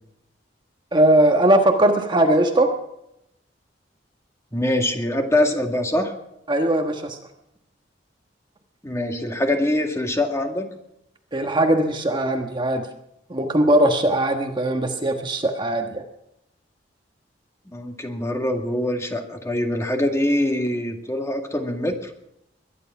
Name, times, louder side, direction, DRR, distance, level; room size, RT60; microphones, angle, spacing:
voice 1, 0.9-2.7 6.5-7.2 11.3-12.9 13.3-16.0, right 1 dB, 25° right, 4 dB, 1.3 m, -19 dB
voice 2, 4.5-6.1 8.8-10.7 17.7-22.0, left 1 dB, 15° left, 3 dB, 2.0 m, -23 dB
22.0 x 11.0 x 5.9 m, 0.82 s
head